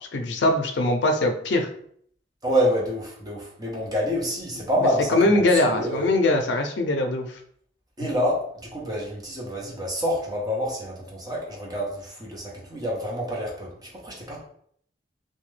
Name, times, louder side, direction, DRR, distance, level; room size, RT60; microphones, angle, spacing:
voice 1, 0.1-1.7 5.1-7.4, left 2 dB, 80° left, 5 dB, 0.4 m, -22 dB
voice 2, 2.4-6.1 8.0-14.4, equal, 20° right, -3 dB, 0.7 m, -27 dB
2.8 x 2.2 x 3.2 m, 0.64 s
head